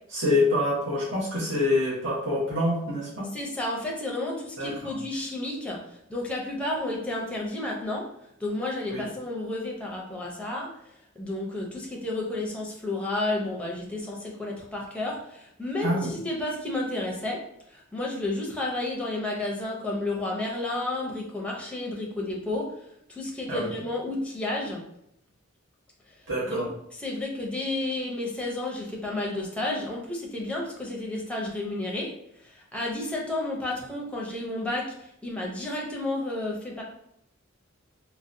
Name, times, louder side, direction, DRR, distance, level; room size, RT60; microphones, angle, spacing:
voice 1, 0.1-3.3 4.6-4.9 8.9-9.0 15.8-16.1 23.5-23.7 26.3-26.7, left 1 dB, 60° right, -8 dB, 1.0 m, -26 dB
voice 2, 3.3-5.8 6.1-8.1 8.4-10.7 11.2-17.4 17.7-22.7 23.1-24.8 26.4-26.6 27.0-32.1 32.4-36.8, left 2 dB, 5° left, -2 dB, 0.5 m, -31 dB
3.8 x 2.1 x 2.6 m, 0.75 s
head